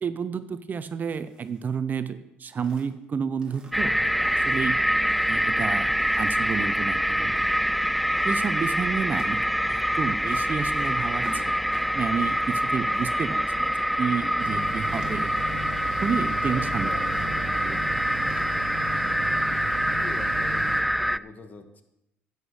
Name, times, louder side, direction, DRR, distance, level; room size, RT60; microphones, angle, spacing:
voice 1, 0.0-4.8 5.3-7.3 8.2-9.4 9.7-11.5 11.9-15.3 16.0-16.9 17.2-18.4, right 6 dB, 40° right, 12 dB, 0.8 m, -31 dB
sound 1, 1.1-1.8 2.2-2.3 2.6-3.1 3.4-3.9 4.2-4.7 5.1-6.5 7.2-7.6 8.1-8.4 9.1-9.3 10.2-12.3 12.6-13.2 14.7-15.3 15.8-16.6 16.9-17.3 18.0-18.4, right 3 dB, 20° right, 2.3 m, -48 dB
sound 2, 3.7-21.2, equal, ahead, 0.3 m, -25 dB
sound 3, 14.4-20.8, right 3 dB, 85° right, 1.5 m, -37 dB
voice 2, 16.5-17.2 19.9-21.8, left 3 dB, 35° left, 8 dB, 1.6 m, -43 dB
11.0 x 8.2 x 6.5 m, 0.87 s
supercardioid pair, 85°, 5 cm